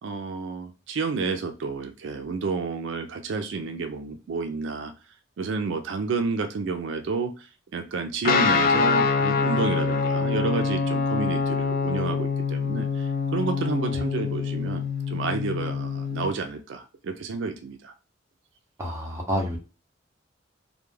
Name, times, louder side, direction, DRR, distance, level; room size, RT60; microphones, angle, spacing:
voice 1, 0.0-4.9 5.4-17.9, right 4 dB, 70° right, 7 dB, 0.3 m, -30 dB
Guitar, 8.2-16.3, left 5 dB, 50° left, 0.3 m, -25 dB
voice 2, 18.8-19.6, equal, 15° right, -2 dB, 0.7 m, -28 dB
2.2 x 2.1 x 3.1 m, 0.33 s
head